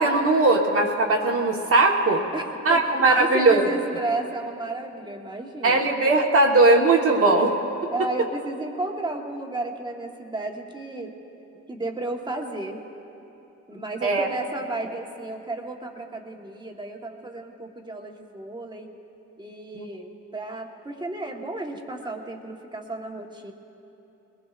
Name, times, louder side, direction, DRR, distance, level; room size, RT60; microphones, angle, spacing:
voice 1, 0.0-2.2 2.6-3.7 5.6-7.5 14.0-14.3 19.7-19.8, right 2 dB, 50° right, 0 dB, 1.4 m, -19 dB
voice 2, 2.3-5.9 7.9-11.1 11.7-12.8 13.7-19.0 19.4-23.5, right 2 dB, 15° right, 2 dB, 1.4 m, -33 dB
21.0 x 19.5 x 2.5 m, 2.9 s
cardioid pair, 90°, 30 cm